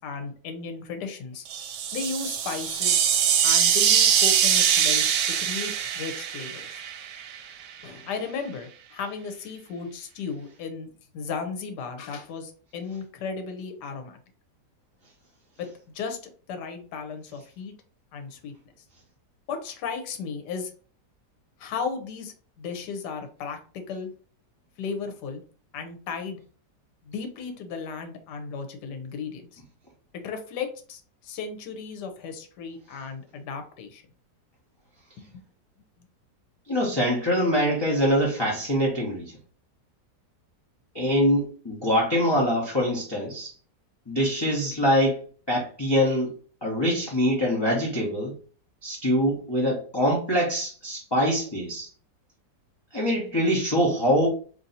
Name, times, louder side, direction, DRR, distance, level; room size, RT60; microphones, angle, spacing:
voice 1, 0.0-1.5 1.9-3.0 3.4-5.0 5.4-6.8 7.8-10.9 11.1-14.2 15.6-15.7 15.9-16.2 16.5-17.7 18.1-18.5 19.5-20.7 21.6-24.1 24.8-25.4 25.7-26.4 27.0-29.6 30.2-34.0 35.3-35.4, left 5 dB, 75° left, 6 dB, 1.3 m, -35 dB
sound 1, 1.5-7.4, right 8 dB, 80° right, 1.2 m, -23 dB
voice 2, 36.7-39.3 40.9-43.5 44.1-45.2 45.5-46.3 46.6-48.3 48.8-51.9 52.9-54.3, equal, 25° left, -3 dB, 0.6 m, -24 dB
3.1 x 2.7 x 4.0 m, 0.40 s
omnidirectional pair, 1.8 m